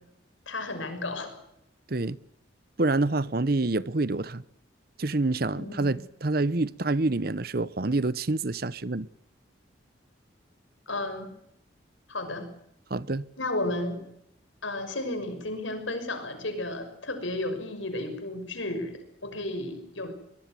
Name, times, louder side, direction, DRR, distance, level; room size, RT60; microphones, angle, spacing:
voice 1, 0.5-1.3 5.5-5.9 10.9-11.3 12.1-12.5 13.4-14.0 14.6-20.1, left 2 dB, 85° left, 6.1 m, -33 dB
voice 2, 2.8-4.4 5.0-9.1 12.9-13.3, right 2 dB, 50° right, 0.9 m, -27 dB
23.0 x 22.0 x 7.7 m
head